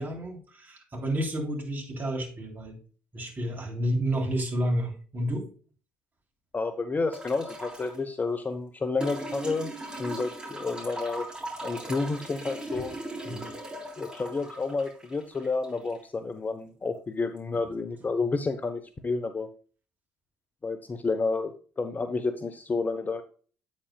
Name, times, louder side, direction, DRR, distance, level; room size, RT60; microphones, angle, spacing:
voice 1, 0.0-2.8 3.1-5.5 12.7-12.8 13.3-13.5, equal, 30° right, 0 dB, 3.5 m, -30 dB
voice 2, 6.5-9.7 10.0-11.3 11.6-12.9 14.0-19.5 20.6-23.2, left 3 dB, 25° left, 9 dB, 0.8 m, -30 dB
sound 1, 7.1-8.0 9.0-16.0 17.4-17.5, right 1 dB, 15° right, 3.5 m, -39 dB
8.6 x 7.5 x 2.3 m, 0.39 s
hypercardioid pair, 60°, 6 cm